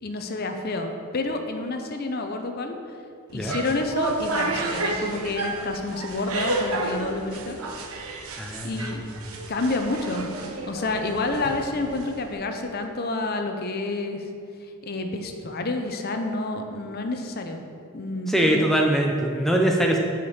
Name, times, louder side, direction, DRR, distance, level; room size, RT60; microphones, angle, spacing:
voice 1, 0.0-2.8 3.3-7.6 8.6-9.0 9.5-14.2 14.8-17.6 17.9-18.8, left 2 dB, 45° left, 5 dB, 0.6 m, -29 dB
sound 1, 3.3-12.3, right 2 dB, 75° right, 0.8 m, -31 dB
voice 2, 8.4-8.8 18.3-20.0, right 1 dB, ahead, 0 dB, 0.5 m, -22 dB
6.7 x 5.1 x 7.1 m, 2.4 s
head